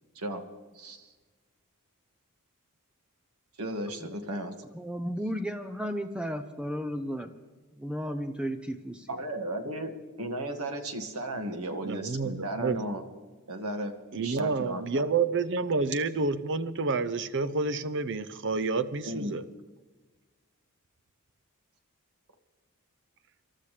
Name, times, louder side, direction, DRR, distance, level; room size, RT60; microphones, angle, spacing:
voice 1, 0.7-1.1 3.6-4.5 9.1-9.9 10.2-13.0 13.5-13.9 14.2-15.0 19.1-19.4, right 1 dB, 75° right, 5 dB, 1.9 m, -35 dB
voice 2, 4.7-7.3 7.8-9.1, equal, 5° right, 7 dB, 0.6 m, -34 dB
voice 3, 11.8-12.8 14.1-19.4, right 4 dB, 55° right, 15 dB, 0.7 m, -29 dB
27.5 x 13.0 x 3.3 m, 1.3 s
head